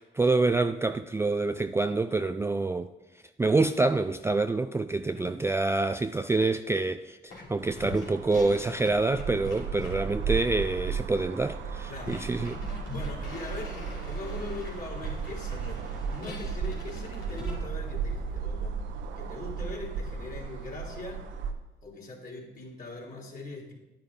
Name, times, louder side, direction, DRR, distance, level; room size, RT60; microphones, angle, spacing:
voice 1, 0.0-2.9 3.4-12.6, right 3 dB, 15° right, 0.3 m, -27 dB
voice 2, 5.0-5.3 11.9-12.1 12.9-18.8 19.2-21.2 21.8-23.7, left 2 dB, 45° left, 3.3 m, -41 dB
sound 1, 7.3-7.5 7.8-17.6, left 3 dB, 85° left, 2.7 m, -44 dB
sound 2, 7.6-21.5, right 5 dB, 75° right, 1.0 m, -35 dB
10.5 x 10.0 x 3.7 m
cardioid pair, 90°, 20 cm